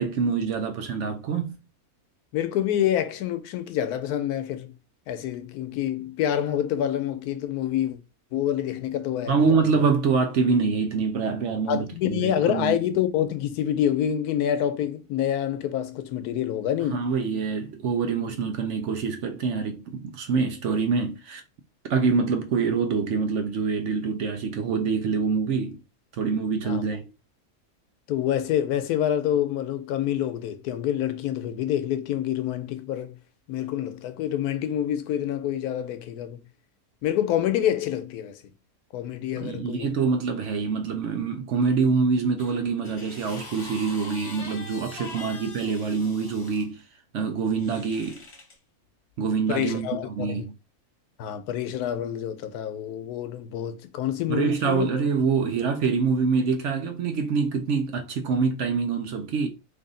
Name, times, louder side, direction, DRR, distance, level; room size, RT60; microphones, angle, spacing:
voice 1, 0.0-1.5 9.3-12.8 16.9-21.4 21.9-25.8 26.1-27.1 39.4-46.8 47.1-48.2 49.2-50.5 54.3-59.5, right 5 dB, 65° right, 0.8 m, -25 dB
voice 2, 2.3-4.7 5.1-8.0 8.3-9.5 9.7-9.8 11.7-17.1 26.6-26.8 28.1-33.1 33.5-36.4 37.0-38.4 38.9-39.9 45.2-45.3 49.5-50.4 51.2-54.9, left 10 dB, 90° left, 1.1 m, -27 dB
sound 1, 42.4-46.7 47.5-48.6 49.5-49.6, left 2 dB, 50° left, 1.1 m, -43 dB
3.4 x 2.6 x 3.7 m
omnidirectional pair, 1.6 m